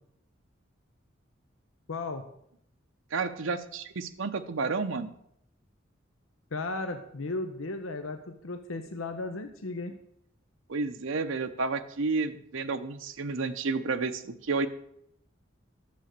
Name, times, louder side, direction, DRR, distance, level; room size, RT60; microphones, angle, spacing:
voice 1, 1.9-2.2 6.5-10.0, left 3 dB, 90° left, 7 dB, 0.9 m, -35 dB
voice 2, 3.1-5.1 10.7-14.7, right 4 dB, 70° right, 8 dB, 0.7 m, -31 dB
11.5 x 7.6 x 6.6 m, 0.74 s
head